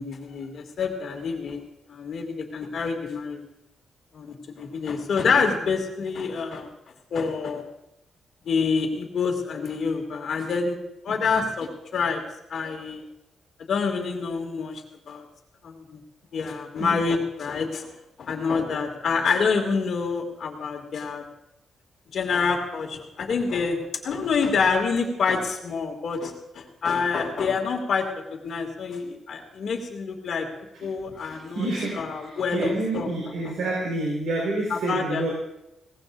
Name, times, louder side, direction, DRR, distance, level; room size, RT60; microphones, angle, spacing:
voice 1, 0.0-1.6 1.9-3.4 4.1-6.7 7.1-7.6 8.5-10.8 11.0-12.2 12.5-13.0 13.7-14.8 15.1-15.3 15.6-16.0 16.3-17.9 18.2-21.2 22.1-23.8 24.0-28.1 28.3-30.5 30.8-31.7 31.9-33.5 34.7-35.3, left 5 dB, 55° left, 2 dB, 2.5 m, -27 dB
voice 2, 31.2-35.3, right 2 dB, 90° right, -3 dB, 4.7 m, -29 dB
23.0 x 18.5 x 2.7 m, 0.89 s
wide cardioid pair, 155°, 0 cm